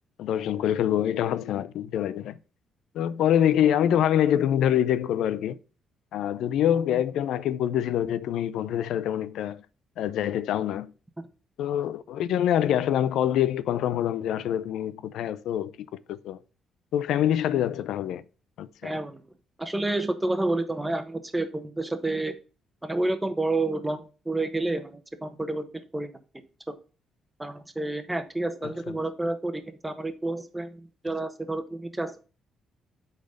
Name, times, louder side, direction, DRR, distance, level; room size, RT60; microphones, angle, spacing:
voice 1, 0.2-2.3 2.9-5.6 6.1-9.6 10.0-10.9 11.6-16.4 16.9-18.2 18.6-18.9 28.9-29.0, left 10 dB, 80° left, 0.4 m, -25 dB
voice 2, 18.8-19.2 19.6-22.3 22.8-26.7 27.4-32.2, right 2 dB, 10° right, 1.1 m, -30 dB
8.5 x 4.1 x 5.2 m
cardioid pair, 90°, 0 cm